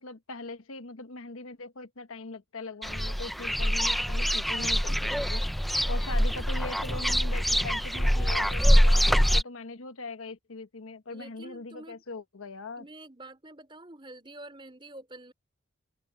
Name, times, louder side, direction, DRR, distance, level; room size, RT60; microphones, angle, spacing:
voice 1, 0.0-5.4 5.9-12.8, left 3 dB, 85° left, 1.2 m, -41 dB
sound 1, 2.8-9.4, equal, ahead, 0.4 m, -24 dB
voice 2, 11.1-12.0 12.8-15.3, right 2 dB, 25° right, 4.9 m, -47 dB
head